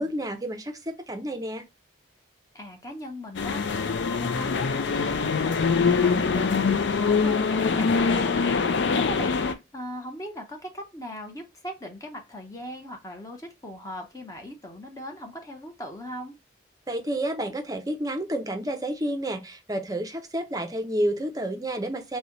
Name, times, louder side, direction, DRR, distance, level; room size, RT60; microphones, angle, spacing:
voice 1, 0.0-1.6 16.9-22.2, right 1 dB, 20° right, 0.5 m, -30 dB
voice 2, 2.5-16.4, equal, 20° left, 0.7 m, -39 dB
sound 1, 3.3-9.5, left 5 dB, 75° left, 0.4 m, -24 dB
4.0 x 2.2 x 2.9 m
head